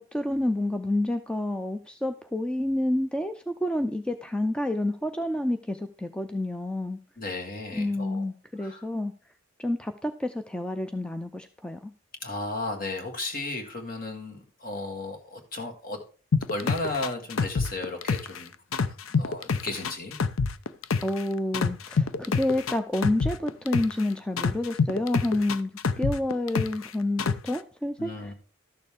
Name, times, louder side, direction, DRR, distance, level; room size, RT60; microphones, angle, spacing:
voice 1, 0.1-7.0 7.7-9.1 9.6-11.9 21.0-25.7 26.0-28.3, left 1 dB, 5° left, 7 dB, 0.4 m, -29 dB
voice 2, 7.2-8.3 8.6-8.9 12.2-16.0 16.5-18.5 18.9-20.2 28.0-28.3, left 2 dB, 45° left, 3 dB, 2.0 m, -34 dB
sound 1, 16.3-18.4 18.7-21.2 21.5-24.0 24.4-26.9 27.2-27.6, left 5 dB, 90° left, 0.6 m, -26 dB
12.5 x 6.8 x 3.5 m, 0.39 s
head